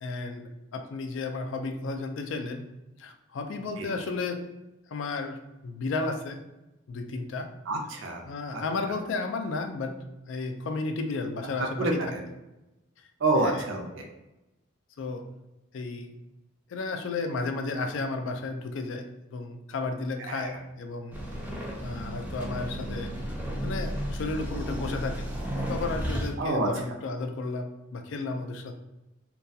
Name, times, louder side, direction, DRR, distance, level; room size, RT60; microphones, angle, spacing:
voice 1, 0.0-2.6 3.0-4.4 4.9-6.4 6.9-7.5 8.2-10.0 10.2-12.0 13.4-13.6 15.0-15.2 15.7-16.2 16.7-21.2 21.8-23.1 23.6-25.3 25.5-28.8, left 3 dB, 65° left, 6 dB, 0.3 m, -33 dB
voice 2, 7.7-8.2 8.5-8.6 11.6-12.2 13.2-14.0 20.2-20.6 26.4-26.7, right 2 dB, 65° right, 2 dB, 0.5 m, -28 dB
sound 1, 21.1-26.3, equal, 10° right, 0.3 m, -33 dB
2.3 x 2.3 x 2.6 m, 0.97 s
head